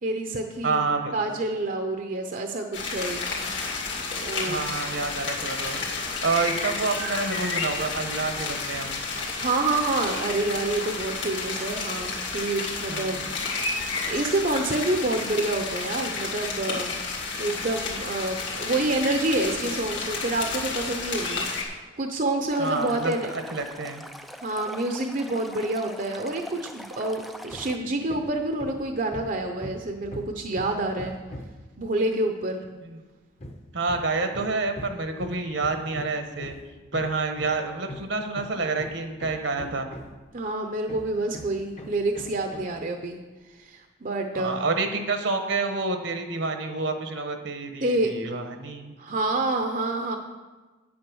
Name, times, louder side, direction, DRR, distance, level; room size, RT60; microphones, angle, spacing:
voice 1, 0.0-3.2 4.2-4.6 9.4-13.3 14.1-16.9 17.4-23.3 24.4-31.1 31.8-32.7 40.3-43.2 43.5-44.6 47.8-48.1 49.0-50.2, right 2 dB, 45° right, 4 dB, 0.7 m, -28 dB
voice 2, 0.6-1.1 4.5-5.8 6.2-9.0 12.9-13.2 22.6-24.0 32.8-33.0 33.7-36.5 36.9-39.9 44.3-49.0, right 3 dB, 70° right, 6 dB, 1.2 m, -28 dB
sound 1, 2.7-21.6, left 4 dB, 65° left, 2.2 m, -31 dB
Stream, 22.5-27.8, equal, ahead, 0.4 m, -43 dB
Hammer, 27.5-27.8 28.1-31.7 33.4-40.3 40.9-42.8, equal, 35° left, 0.9 m, -41 dB
8.6 x 8.5 x 6.2 m, 1.3 s
head